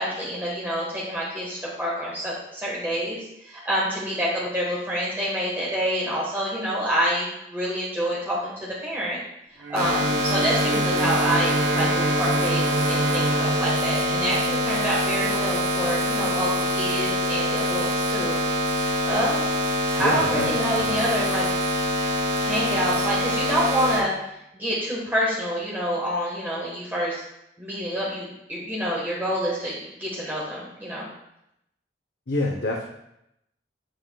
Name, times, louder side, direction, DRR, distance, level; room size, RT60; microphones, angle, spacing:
voice 1, 0.0-9.2 9.7-18.4 19.0-19.6 19.9-21.4 22.3-24.1 24.5-27.2 27.6-31.1, equal, 10° right, -6 dB, 1.4 m, -27 dB
Bowed string instrument, 9.6-15.1, right 2 dB, 90° right, 1.3 m, -28 dB
sound 1, 9.7-24.0, equal, 55° right, 1.6 m, -25 dB
voice 2, 20.0-20.5 20.8-21.1 32.3-32.9, left 2 dB, 65° left, 0 dB, 0.8 m, -27 dB
9.0 x 7.6 x 2.3 m, 0.82 s
head